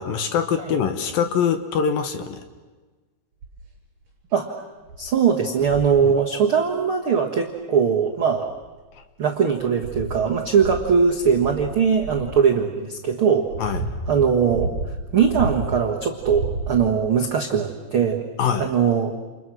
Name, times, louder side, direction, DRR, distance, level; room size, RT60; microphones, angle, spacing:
voice 1, 0.0-2.4 13.6-13.8 18.4-18.7, left 7 dB, 65° left, 8 dB, 2.6 m, -23 dB
sound 1, 3.4-3.7 4.3-4.4 4.9-5.1 5.6-6.0 7.4-7.5 8.3-9.0 9.5-12.4 13.1-15.8 16.2-17.1 18.0-18.1, right 2 dB, 40° right, 6.4 m, -32 dB
voice 2, 4.3-4.6 5.0-8.5 9.2-13.5 14.1-14.7 15.1-18.3 18.6-19.2, right 6 dB, 70° right, 1 dB, 1.2 m, -20 dB
29.5 x 29.5 x 6.3 m, 1.3 s
omnidirectional pair, 5.0 m